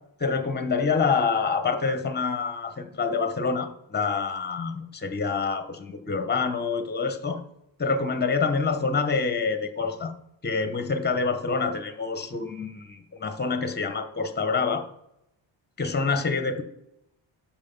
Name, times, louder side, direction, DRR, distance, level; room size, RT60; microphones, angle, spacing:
voice 1, 0.2-7.4 7.8-10.1 10.4-14.8 15.8-16.6, left 4 dB, 20° left, 9 dB, 0.9 m, -26 dB
11.5 x 4.4 x 5.4 m, 0.84 s
cardioid pair, 150°, 49 cm